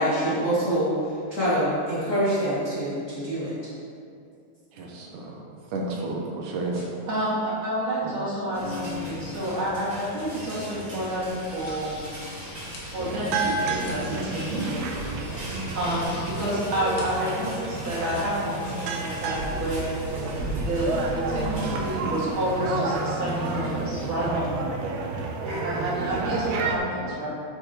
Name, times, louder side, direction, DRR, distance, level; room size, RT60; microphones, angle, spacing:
voice 1, 0.0-3.5, equal, 25° left, -11 dB, 2.4 m, -25 dB
voice 2, 4.7-5.4 5.7-6.8 8.0-8.1 25.2-25.3, right 2 dB, 90° right, -1 dB, 2.6 m, -32 dB
voice 3, 6.7-11.9 12.8-14.7 15.7-20.0 20.6-24.7 25.5-27.3, right 1 dB, 45° right, -8 dB, 2.9 m, -29 dB
sound 1, 8.5-24.4 25.1-26.4, equal, 20° right, 1.3 m, -38 dB
sound 2, 11.1-17.1, left 2 dB, 75° left, 2.8 m, -47 dB
sound 3, 13.0-26.8, right 4 dB, 70° right, 1.8 m, -31 dB
9.6 x 8.0 x 3.1 m, 2.4 s
omnidirectional pair, 3.4 m